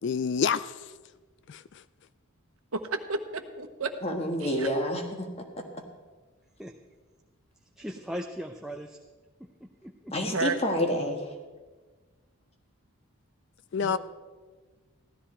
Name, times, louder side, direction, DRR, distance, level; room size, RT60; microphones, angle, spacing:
voice 1, 0.0-0.7 1.5-1.6 13.7-14.0, left 6 dB, 55° left, 16 dB, 0.3 m, -27 dB
voice 2, 2.7-4.1 4.4-4.7 10.3-10.6 13.8-14.0, right 3 dB, 75° right, 7 dB, 1.1 m, -32 dB
voice 3, 4.0-5.6 10.1-11.3, left 1 dB, 30° left, 4 dB, 1.5 m, -29 dB
voice 4, 7.8-9.0 9.6-10.4, equal, ahead, 2 dB, 0.6 m, -39 dB
15.5 x 12.5 x 4.4 m, 1.4 s
head